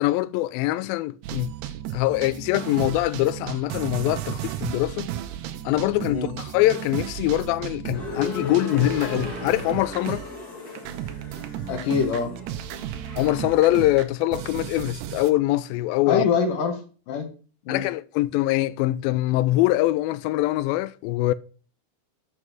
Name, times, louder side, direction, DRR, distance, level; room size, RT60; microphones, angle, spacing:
voice 1, 0.0-1.5 1.9-5.1 5.6-10.2 13.2-16.2 17.7-21.3, left 17 dB, 85° left, 2.1 m, -23 dB
sound 1, 1.2-10.5 10.7-15.3, right 12 dB, 80° right, 2.7 m, -34 dB
sound 2, 7.9-13.8, left 2 dB, 50° left, 1.2 m, -36 dB
voice 2, 11.7-12.3 16.1-16.8 17.1-17.3 17.7-17.8, left 5 dB, 65° left, 2.7 m, -24 dB
7.3 x 6.3 x 6.0 m
omnidirectional pair, 4.7 m